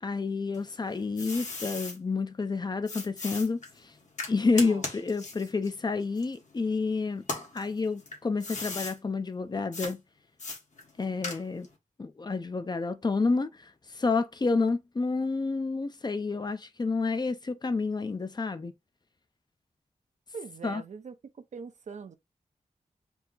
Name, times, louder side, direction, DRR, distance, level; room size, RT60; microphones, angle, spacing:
voice 1, 0.0-3.9 4.3-7.3 7.5-10.0 11.0-11.7 12.0-18.7 20.6-20.8, left 4 dB, 30° left, 0.5 m, -29 dB
sound 1, 0.5-2.0 2.9-6.8 7.2-9.0 9.7-9.9 10.4-11.7, left 3 dB, 65° left, 1.5 m, -38 dB
voice 2, 20.3-22.2, right 5 dB, 60° right, 0.5 m, -43 dB
4.6 x 2.0 x 3.9 m
wide cardioid pair, 125°, 14 cm